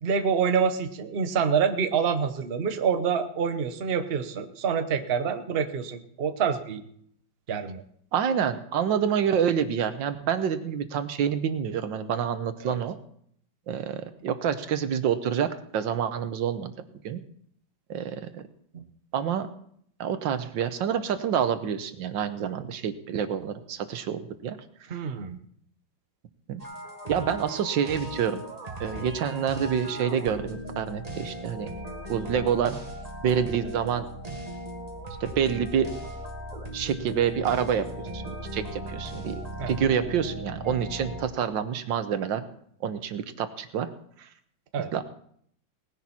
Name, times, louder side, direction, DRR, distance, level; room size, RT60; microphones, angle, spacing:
voice 1, 0.0-6.8 7.5-7.8 12.6-12.8 18.7-18.8 24.9-25.4 28.9-29.1 39.6-39.8 44.7-44.9, right 6 dB, 40° right, 8 dB, 1.0 m, -27 dB
voice 2, 8.1-13.0 13.7-16.7 17.0-17.2 17.9-18.4 19.1-19.5 20.0-24.6 26.5-26.6 27.1-28.4 28.8-31.7 32.1-32.8 33.2-34.1 35.2-35.9 36.7-37.9 38.1-39.4 39.7-42.5 42.8-43.9 44.2-44.3 44.9-45.0, right 8 dB, 85° right, 10 dB, 1.7 m, -27 dB
sound 1, 26.6-41.2, right 1 dB, 20° right, 1.8 m, -38 dB
18.5 x 10.5 x 4.3 m, 0.66 s
omnidirectional pair, 2.0 m